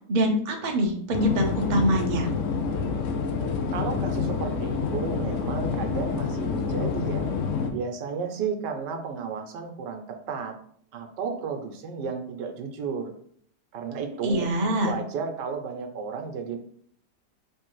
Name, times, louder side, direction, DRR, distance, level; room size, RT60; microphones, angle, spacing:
voice 1, 0.1-2.3 14.2-15.0, equal, 45° right, 2 dB, 0.6 m, -24 dB
sound 1, 1.1-7.7, left 5 dB, 65° left, 0.8 m, -28 dB
voice 2, 3.7-7.3 7.7-10.6 10.9-13.1 13.7-14.5 14.8-16.6, right 5 dB, 90° right, 4 dB, 1.4 m, -33 dB
3.3 x 3.2 x 4.6 m, 0.63 s
omnidirectional pair, 1.8 m